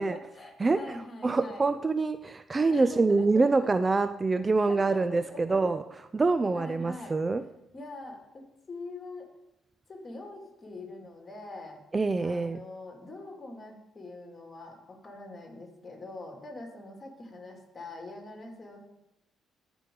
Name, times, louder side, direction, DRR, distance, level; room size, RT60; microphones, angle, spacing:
voice 1, 0.0-1.7 2.7-3.7 4.7-5.6 6.5-7.2 7.7-9.3 9.9-11.8 12.2-18.8, left 2 dB, 35° left, 2 dB, 2.5 m, -43 dB
voice 2, 1.2-5.8 6.1-7.4 11.9-12.6, right 3 dB, 30° right, 12 dB, 0.4 m, -25 dB
14.0 x 5.1 x 3.8 m, 0.88 s
hypercardioid pair, 50°, 0 cm